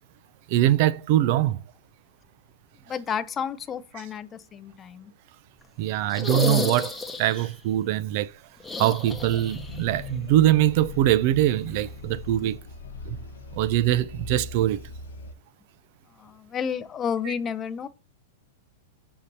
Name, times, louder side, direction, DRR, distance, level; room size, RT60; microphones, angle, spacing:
voice 1, 0.5-1.6 5.8-8.3 8.8-12.6 13.0-13.2 13.5-14.8 17.3-17.4, right 13 dB, 55° right, 0.5 m, -23 dB
voice 2, 2.9-5.1 16.2-17.9, left 7 dB, 25° left, 0.5 m, -31 dB
sound 1, 6.1-7.5 8.6-9.8 10.1-10.2 11.8-11.9, left 3 dB, 10° left, 0.9 m, -31 dB
sound 2, 9.0-15.3, left 4 dB, 85° left, 1.0 m, -40 dB
6.7 x 2.8 x 5.2 m
hypercardioid pair, 130°, 0 cm